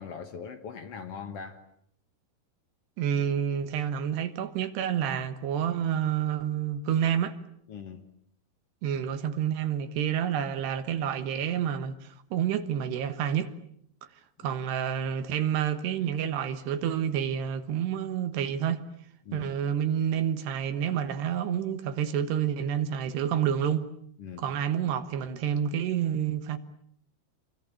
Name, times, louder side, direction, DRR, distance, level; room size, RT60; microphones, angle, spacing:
voice 1, 0.0-1.6 7.7-8.1 14.5-14.6 19.2-19.5 24.2-24.4, left 6 dB, 85° left, 1.3 m, -41 dB
voice 2, 3.0-7.4 8.8-13.6 14.4-18.8 19.3-23.8 24.4-26.6, right 9 dB, 70° right, 3.3 m, -29 dB
28.0 x 23.5 x 8.5 m
omnidirectional pair, 5.2 m